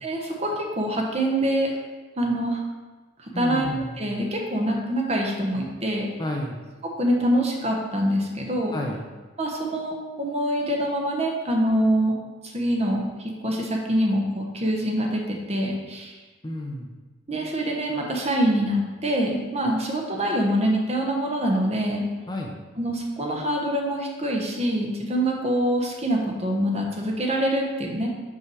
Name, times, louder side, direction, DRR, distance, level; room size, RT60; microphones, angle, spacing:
voice 1, 0.0-1.7 2.2-2.6 3.2-3.7 4.0-6.1 7.0-8.7 9.4-12.1 12.5-16.1 17.3-22.0 22.8-28.1, right 1 dB, 35° right, 0 dB, 1.0 m, -25 dB
voice 2, 3.3-4.0 6.2-6.6 8.7-9.1 16.4-16.9 22.3-22.6, left 1 dB, 20° left, 0 dB, 0.6 m, -31 dB
5.6 x 4.7 x 4.7 m, 1.3 s
head